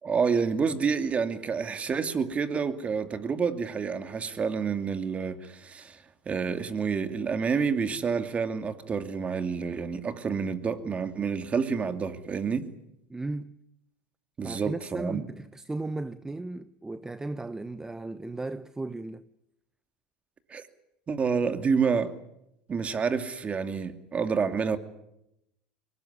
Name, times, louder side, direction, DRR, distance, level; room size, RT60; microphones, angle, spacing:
voice 1, 0.0-6.0 6.3-12.7 14.4-15.2 20.5-20.6 21.1-22.1 22.7-24.8, right 5 dB, 30° right, 2.4 m, -28 dB
voice 2, 13.1-13.6 14.4-19.2, right 2 dB, 10° right, 0.9 m, -35 dB
23.0 x 19.0 x 9.9 m
hypercardioid pair, 90°, 5 cm